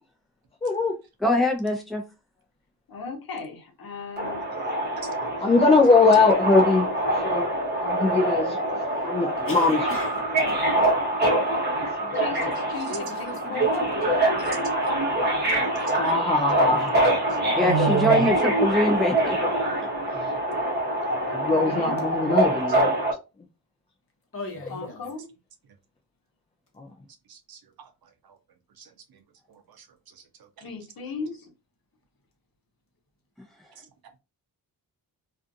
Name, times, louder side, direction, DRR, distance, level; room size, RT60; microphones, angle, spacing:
voice 1, 0.6-1.0 5.4-6.9 7.2-7.5 7.8-8.6 9.0-9.8 11.4-11.5 11.7-12.5 15.9-17.1 20.1-20.3 21.3-22.9 26.8-26.9, left 3 dB, 15° left, 0.3 m, -22 dB
voice 2, 1.2-2.0 16.7-16.8 17.5-19.4 19.8-19.9, left 1 dB, ahead, 0.8 m, -23 dB
voice 3, 2.9-4.4 11.1-11.2 12.1-13.8 21.5-22.0 24.7-25.3 30.6-31.5, left 4 dB, 60° left, 0.9 m, -36 dB
Subway metro underground, 4.2-23.1, right 1 dB, 25° right, 0.9 m, -25 dB
voice 4, 7.9-8.4 9.4-10.7 12.7-14.3 24.3-25.0, left 2 dB, 35° left, 1.0 m, -38 dB
voice 5, 14.4-14.9 15.8-15.9 17.6-18.3 27.3-27.6 28.8-28.9 29.5-29.9, right 6 dB, 65° right, 0.6 m, -30 dB
2.5 x 2.5 x 2.5 m
wide cardioid pair, 115°, 40 cm